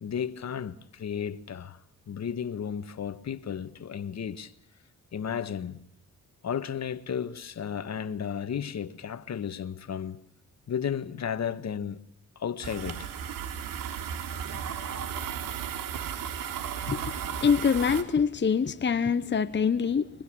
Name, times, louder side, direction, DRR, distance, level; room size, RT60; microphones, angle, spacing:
voice 1, 0.0-1.8 2.1-4.5 5.1-5.8 6.4-10.2 10.7-12.0 12.4-13.1, left 8 dB, 55° left, 1.7 m, -33 dB
sound 1, 12.6-18.0, right 8 dB, 90° right, 3.3 m, -35 dB
voice 2, 16.9-20.1, left 6 dB, 35° left, 1.1 m, -25 dB
30.0 x 24.5 x 6.3 m
cardioid pair, 90°, 33 cm